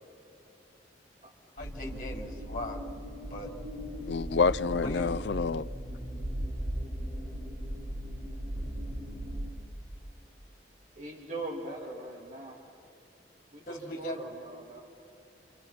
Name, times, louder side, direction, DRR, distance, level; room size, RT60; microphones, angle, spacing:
voice 1, 1.6-2.8 3.3-3.5 4.8-5.1 13.7-14.2, left 1 dB, 45° left, 3.4 m, -39 dB
sound 1, 1.6-9.5, equal, 70° right, 5.1 m, -37 dB
voice 2, 4.1-5.7, left 4 dB, 80° left, 0.5 m, -27 dB
voice 3, 11.0-12.6 13.5-14.8, right 2 dB, 45° right, 2.8 m, -41 dB
28.5 x 26.5 x 5.9 m
head